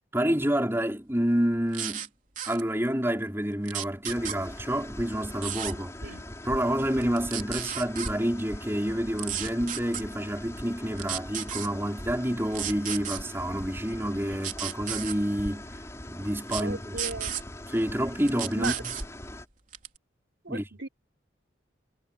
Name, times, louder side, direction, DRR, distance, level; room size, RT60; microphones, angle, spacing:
voice 1, 0.1-2.1 2.5-6.0 6.4-15.7 16.0-17.0 17.7-18.9 20.5-20.6, equal, 10° right, 4.7 m, -28 dB
sound 1, 1.7-2.1 2.4-2.6 3.7-4.4 5.4-5.7 7.0-8.1 9.2-10.0 11.0-11.7 12.5-13.2 14.4-15.2 16.5-16.6 17.0-17.4 18.3-19.1 19.7-20.0, right 9 dB, 40° right, 3.7 m, -33 dB
sound 2, 4.1-19.5, left 1 dB, 15° left, 5.6 m, -41 dB
voice 2, 16.6-17.4 18.6-18.8 20.4-20.9, right 3 dB, 75° right, 3.6 m, -36 dB
head